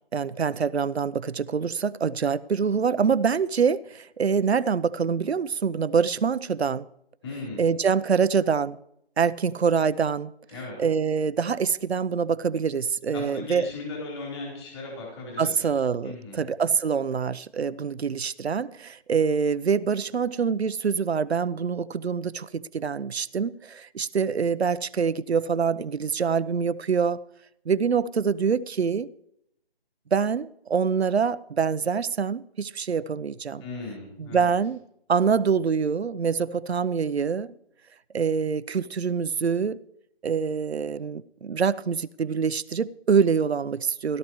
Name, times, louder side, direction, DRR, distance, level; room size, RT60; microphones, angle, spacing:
voice 1, 0.1-6.9 7.6-8.8 9.2-10.3 10.8-13.7 15.4-27.2 27.7-29.1 30.1-33.6 34.2-34.8 35.1-37.6 38.1-39.8 40.2-44.2, right 6 dB, 85° right, 0.8 m, -25 dB
voice 2, 7.2-7.7 10.5-10.8 13.1-16.5 33.6-34.5, left 3 dB, 25° left, 4.1 m, -37 dB
17.0 x 13.0 x 3.1 m
hypercardioid pair, 165°, 31 cm